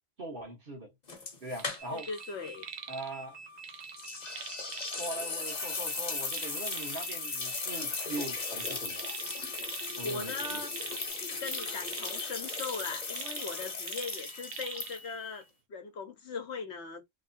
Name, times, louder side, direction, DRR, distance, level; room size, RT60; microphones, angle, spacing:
voice 1, 0.2-0.9 1.4-2.1 2.9-3.4 4.9-9.1 10.0-10.6, right 2 dB, 45° right, 1.3 m, -41 dB
sound 1, 1.1-2.2 2.5-2.6 4.0-15.3, left 4 dB, 35° left, 1.0 m, -37 dB
sound 2, 1.5-2.3 2.6-3.1 3.6-5.1 6.3-7.1 8.6-10.0 10.3-15.0 15.4-15.5, right 8 dB, 65° right, 0.8 m, -44 dB
sound 3, 1.8-11.1, right 3 dB, 80° right, 1.4 m, -49 dB
voice 2, 1.9-2.7 9.8-10.7 11.4-17.0, left 4 dB, 60° left, 1.1 m, -39 dB
3.3 x 3.0 x 2.6 m
omnidirectional pair, 1.3 m